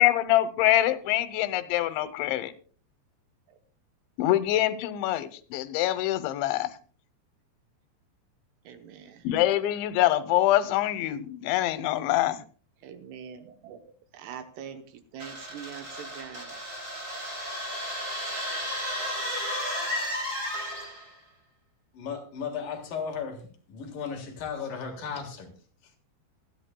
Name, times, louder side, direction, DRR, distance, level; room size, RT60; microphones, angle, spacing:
voice 1, 0.0-2.5 4.2-6.7 9.2-12.4, left 14 dB, 90° left, 3.2 m, -25 dB
voice 2, 8.7-9.2 12.8-16.6, right 8 dB, 75° right, 2.8 m, -44 dB
sound 1, 15.2-21.1, equal, 20° right, 4.6 m, -33 dB
voice 3, 21.9-25.5, left 6 dB, 60° left, 2.8 m, -35 dB
26.0 x 9.8 x 2.2 m
omnidirectional pair, 5.1 m